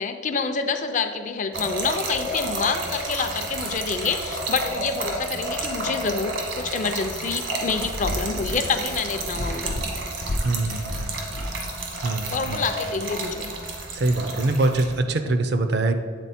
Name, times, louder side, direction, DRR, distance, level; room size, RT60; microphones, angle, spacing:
voice 1, 0.0-10.0 12.3-13.5, left 5 dB, 40° left, 8 dB, 0.4 m, -27 dB
Trickle dribble / Fill (with liquid), 1.5-15.0, right 2 dB, 75° right, 1.3 m, -31 dB
sound 1, 7.3-13.7, left 1 dB, 90° left, 0.6 m, -34 dB
voice 2, 10.4-11.1 12.0-12.6 13.9-16.0, right 2 dB, 55° right, 8 dB, 0.5 m, -23 dB
8.1 x 4.1 x 4.2 m, 2.1 s
head